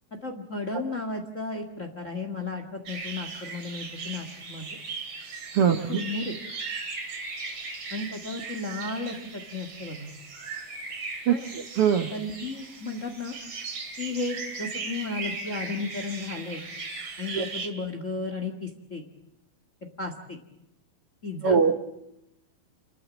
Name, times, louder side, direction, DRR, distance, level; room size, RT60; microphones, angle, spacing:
voice 1, 0.2-4.8 5.9-6.3 7.9-10.1 11.3-11.4 12.1-13.4 14.0-16.6 17.2-19.0 20.0-20.4 21.2-21.6, left 3 dB, 30° left, 5 dB, 1.4 m, -34 dB
sound 1, 2.9-17.7, right 4 dB, 45° right, 3.4 m, -38 dB
voice 2, 11.3-12.1 17.4-17.5 21.4-21.8, right 7 dB, 80° right, 7 dB, 1.3 m, -22 dB
29.0 x 13.5 x 8.5 m, 0.85 s
omnidirectional pair, 4.3 m